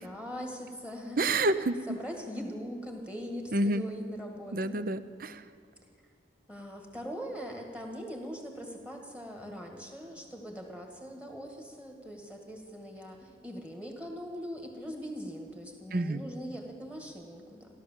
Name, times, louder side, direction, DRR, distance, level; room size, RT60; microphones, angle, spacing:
voice 1, 0.0-1.2 1.9-4.8 5.9-6.0 6.5-17.7, equal, 5° right, 2 dB, 1.9 m, -41 dB
voice 2, 1.2-2.0 3.5-3.8 4.5-5.4 15.9-16.2, right 2 dB, 50° right, 13 dB, 0.6 m, -28 dB
15.5 x 12.0 x 7.4 m, 2.3 s
head